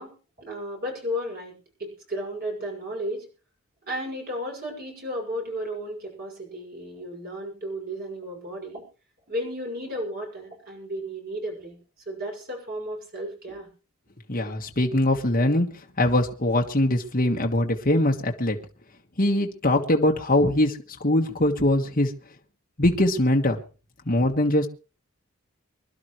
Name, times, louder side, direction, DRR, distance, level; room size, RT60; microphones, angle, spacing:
voice 1, 0.0-3.2 3.9-8.8 9.3-11.8 12.1-13.7, equal, 45° right, 0 dB, 6.2 m, -34 dB
voice 2, 14.3-18.6 19.2-22.1 22.8-23.6 24.0-24.7, left 1 dB, 40° left, 1 dB, 1.6 m, -22 dB
25.0 x 12.0 x 3.2 m, 0.34 s
head